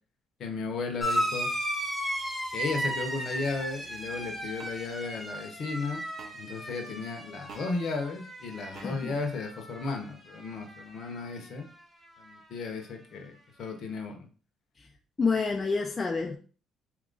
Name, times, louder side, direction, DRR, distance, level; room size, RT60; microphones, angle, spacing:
voice 1, 0.4-1.5 2.5-6.0 6.3-11.7 12.2-14.3, left 4 dB, 55° left, 4 dB, 0.7 m, -35 dB
sound 1, 1.0-10.0 10.3-11.1 12.2-12.3, equal, ahead, 0.7 m, -35 dB
sound 2, 3.3-3.5 4.6-4.7 6.2-6.4 7.5-7.7 8.7-8.9, right 4 dB, 55° right, 0.7 m, -47 dB
voice 2, 8.7-9.2 14.8-14.9 15.2-16.4, left 4 dB, 25° left, 2 dB, 0.3 m, -28 dB
2.9 x 2.4 x 3.7 m, 0.40 s
cardioid pair, 135°, 0 cm